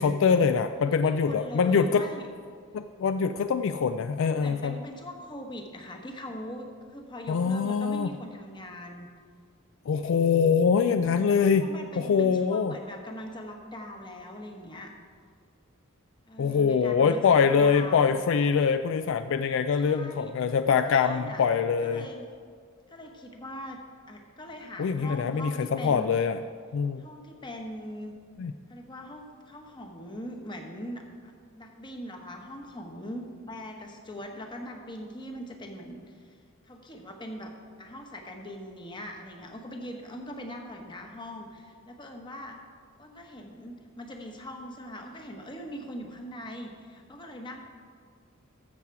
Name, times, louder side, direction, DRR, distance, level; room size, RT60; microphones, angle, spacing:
voice 1, 0.0-2.0 2.7-4.8 7.3-8.1 9.9-11.7 12.0-12.7 16.4-22.1 24.8-26.4 26.7-27.0 28.4-28.5, left 6 dB, 60° left, 10 dB, 0.3 m, -24 dB
voice 2, 1.0-2.3 4.2-9.1 11.4-14.9 16.3-18.2 19.8-20.3 20.7-21.4 21.8-22.3 22.9-23.8 24.1-26.1 27.0-28.2 28.7-36.4 36.7-37.5 37.8-42.6 43.0-47.6, equal, 20° left, 3 dB, 1.1 m, -41 dB
13.5 x 7.2 x 4.7 m, 2.1 s
head